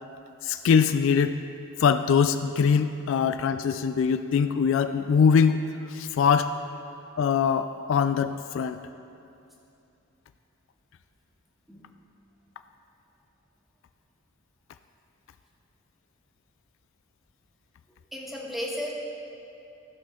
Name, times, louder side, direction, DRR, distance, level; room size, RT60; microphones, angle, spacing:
voice 1, 0.4-1.4 1.8-5.6 5.9-6.5 7.2-8.8, left 6 dB, 70° left, 10 dB, 0.3 m, -22 dB
voice 2, 18.1-18.9, left 1 dB, ahead, -4 dB, 1.4 m, -34 dB
14.5 x 6.1 x 3.7 m, 2.7 s
head